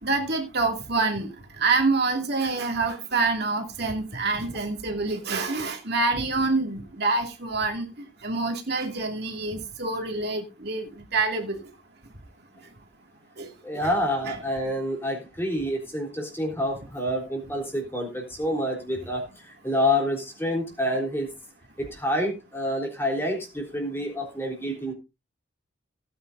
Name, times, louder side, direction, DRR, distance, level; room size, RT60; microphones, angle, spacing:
voice 1, 0.0-7.9 8.2-11.6 13.4-13.5 14.2-14.4, right 3 dB, 55° right, 2 dB, 2.4 m, -26 dB
voice 2, 13.6-21.3 21.8-24.9, left 1 dB, 10° left, 0 dB, 3.6 m, -28 dB
17.5 x 9.0 x 2.6 m, 0.27 s
head